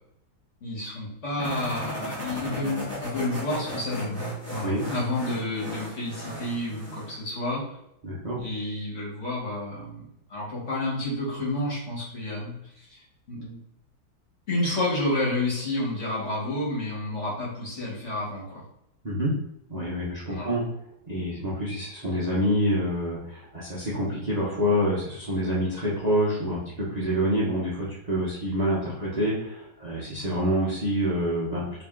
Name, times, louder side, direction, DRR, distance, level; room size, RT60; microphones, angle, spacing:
voice 1, 0.6-7.6 8.4-13.0 13.3-13.6 14.5-18.6 20.3-20.6, left 1 dB, 40° left, -5 dB, 1.5 m, -30 dB
sound 1, 1.4-7.2, equal, 10° left, 0.8 m, -36 dB
voice 2, 8.0-8.4 19.0-19.3 19.7-20.6 21.1-31.8, equal, 75° right, -6 dB, 0.3 m, -27 dB
3.5 x 2.9 x 3.6 m, 0.78 s
omnidirectional pair, 2.2 m